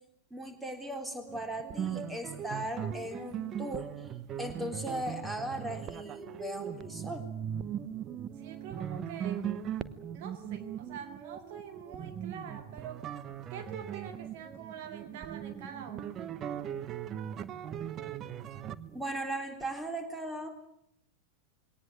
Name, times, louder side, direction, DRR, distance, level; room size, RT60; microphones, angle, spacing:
voice 1, 0.3-3.9 4.4-7.3 18.9-20.5, right 1 dB, 5° right, 6 dB, 3.7 m, -38 dB
sound 1, 1.3-19.0, right 9 dB, 30° right, 1.0 m, -39 dB
voice 2, 8.4-9.4 10.1-13.0 13.5-16.4, right 7 dB, 50° right, 7 dB, 2.0 m, -45 dB
21.5 x 18.5 x 9.4 m, 0.75 s
figure-of-eight pair, 90°, 0 cm